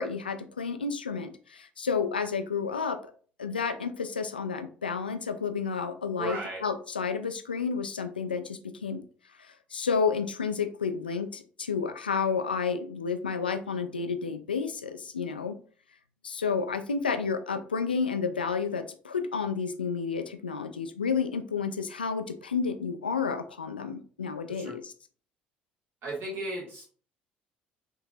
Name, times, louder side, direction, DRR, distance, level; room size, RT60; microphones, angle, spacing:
voice 1, 0.0-3.0 3.4-9.0 9.4-15.6 16.2-24.9, left 5 dB, 85° left, 8 dB, 0.4 m, -31 dB
voice 2, 6.2-6.6 24.5-24.8 26.0-26.8, right 2 dB, 50° right, -3 dB, 1.8 m, -35 dB
6.0 x 2.9 x 2.6 m, 0.43 s
figure-of-eight pair, 55°, 5 cm